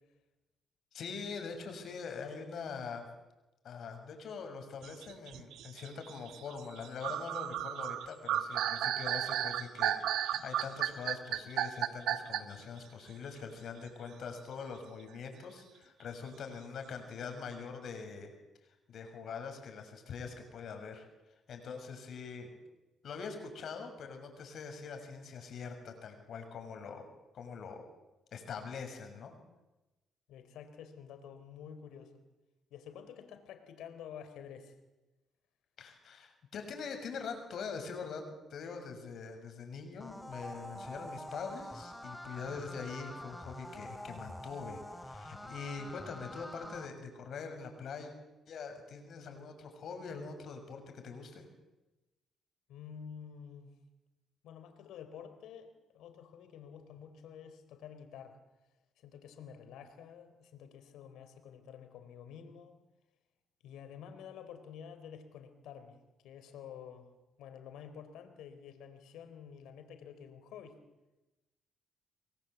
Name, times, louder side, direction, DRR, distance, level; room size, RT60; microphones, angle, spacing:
voice 1, 0.9-3.0 3.6-18.3 18.9-21.0 21.5-22.5 23.0-27.0 27.3-27.9 28.3-29.4 35.8-48.1 48.5-51.5, left 5 dB, 65° left, 5 dB, 6.7 m, -43 dB
sound 1, 4.8-12.6, right 11 dB, 85° right, 1.4 m, -34 dB
voice 2, 30.3-32.1 32.7-34.8 52.7-53.7 54.4-58.4 59.0-62.8 63.6-66.0 66.2-67.1 67.4-70.8, left 8 dB, 85° left, 9 dB, 3.7 m, -50 dB
sound 2, 40.0-46.9, left 1 dB, 10° left, 2.9 m, -46 dB
29.5 x 22.5 x 8.2 m, 1.1 s
cardioid pair, 90°, 0 cm